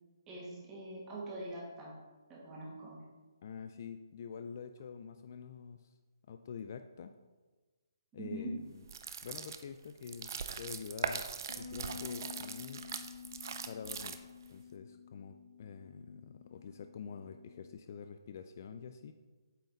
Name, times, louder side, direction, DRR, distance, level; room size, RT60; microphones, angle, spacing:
voice 1, 0.3-1.9 2.3-3.0 8.2-8.5, right 1 dB, 15° right, -5 dB, 1.6 m, -43 dB
voice 2, 3.4-5.9 6.3-7.1 8.1-8.8 9.2-10.3 10.6-11.3 11.6-12.8 13.7-14.2 14.5-19.1, left 6 dB, 40° left, 8 dB, 0.3 m, -46 dB
sound 1, 8.8-14.5, right 6 dB, 50° right, 0.4 m, -41 dB
Bass guitar, 11.5-17.7, left 7 dB, 80° left, 1.0 m, -50 dB
8.3 x 4.0 x 3.9 m, 1.3 s
hypercardioid pair, 160°, 2 cm